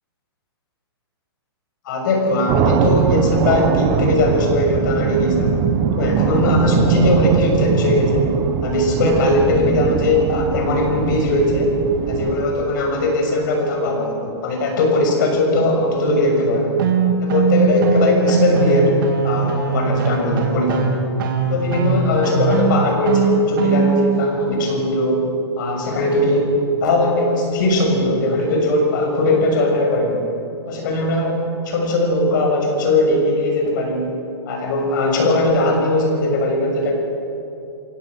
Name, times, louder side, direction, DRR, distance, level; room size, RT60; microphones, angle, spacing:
voice 1, 1.8-5.6 5.9-8.3 8.6-11.8 12.1-14.2 14.4-16.8 17.2-20.9 21.5-25.3 25.6-30.3 30.7-34.1 34.5-36.9, left 1 dB, 45° left, 1 dB, 6.5 m, -19 dB
sound 1, 2.5-12.9, right 8 dB, 25° right, 1.0 m, -21 dB
sound 2, 16.8-24.2, right 6 dB, 50° right, 3.4 m, -20 dB
30.0 x 16.0 x 6.4 m, 2.7 s
hypercardioid pair, 160°, 14 cm